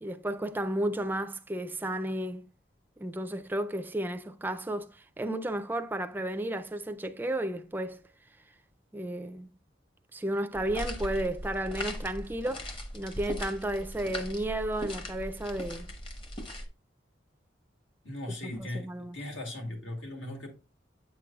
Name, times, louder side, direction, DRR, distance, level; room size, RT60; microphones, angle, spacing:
voice 1, 0.0-2.4 3.0-8.0 8.9-9.5 10.1-12.7 12.9-15.9 18.4-19.2, right 1 dB, 10° right, 0.4 m, -33 dB
sound 1, 10.5-16.7, equal, 30° left, 0.9 m, -39 dB
voice 2, 18.0-20.5, left 1 dB, 85° left, 2.1 m, -38 dB
8.3 x 6.1 x 2.3 m
head